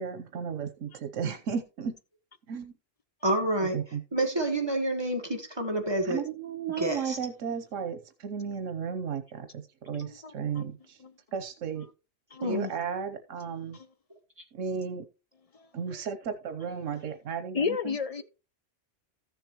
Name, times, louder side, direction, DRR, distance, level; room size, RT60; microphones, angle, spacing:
voice 1, 0.0-1.9 2.5-2.7 3.7-4.0 6.0-11.0 11.3-11.9 12.4-13.8 14.5-15.1 15.7-18.0, right 6 dB, 85° right, 1.2 m, -34 dB
voice 2, 3.2-3.8 4.1-6.2 6.8-7.2 12.4-12.7, right 1 dB, 20° right, 1.5 m, -28 dB
voice 3, 10.0-10.7 12.3-12.5 13.7-13.9 15.5-15.7 17.5-18.2, left 5 dB, 55° left, 0.4 m, -32 dB
14.0 x 6.9 x 3.0 m
omnidirectional pair, 1.3 m